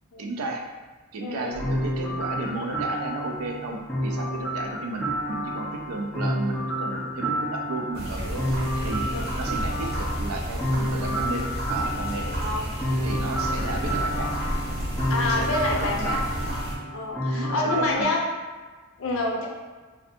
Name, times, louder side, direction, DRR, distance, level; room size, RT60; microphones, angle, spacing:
voice 1, 0.2-0.6 1.1-8.5 8.8-9.1 9.4-12.3 13.0-14.3 15.2-16.2 17.3-18.2, right 3 dB, 80° right, 2 dB, 0.4 m, -33 dB
voice 2, 1.2-1.6 9.1-9.2 12.2-12.6 15.1-16.2 16.9-18.2 19.0-19.5, left 2 dB, 70° left, -1 dB, 0.5 m, -27 dB
sound 1, 1.5-18.0, equal, 5° left, 0.4 m, -30 dB
sound 2, 7.9-16.8, right 1 dB, 50° right, 0.7 m, -31 dB
2.6 x 2.2 x 2.5 m, 1.4 s
head